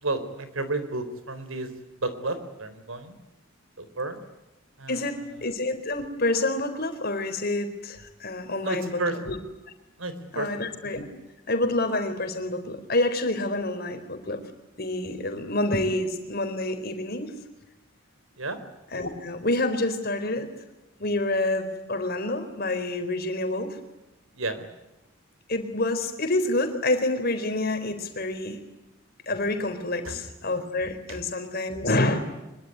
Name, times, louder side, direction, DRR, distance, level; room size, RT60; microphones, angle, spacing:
voice 1, 0.0-1.7 2.0-3.2 3.8-4.2 4.8-5.0 8.6-9.3 10.0-10.6 18.4-18.6 24.3-24.7 30.0-30.2 31.1-31.2, right 2 dB, 80° right, 11 dB, 4.0 m, -31 dB
voice 2, 4.9-8.9 9.3-9.4 10.3-11.1 11.5-14.4 14.8-17.4 18.9-20.5 21.0-23.8 25.5-28.6 29.3-32.2, left 2 dB, 45° left, 7 dB, 4.0 m, -27 dB
25.0 x 23.0 x 9.8 m, 0.99 s
head